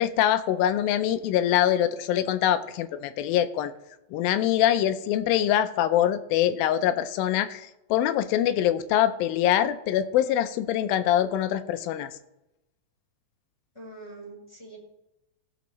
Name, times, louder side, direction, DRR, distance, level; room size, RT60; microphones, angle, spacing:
voice 1, 0.0-3.7 4.1-12.1, left 11 dB, 85° left, 11 dB, 2.4 m, -24 dB
voice 2, 13.7-14.8, right 2 dB, 10° left, -4 dB, 3.8 m, -44 dB
20.0 x 6.9 x 3.1 m, 0.93 s
omnidirectional pair, 4.2 m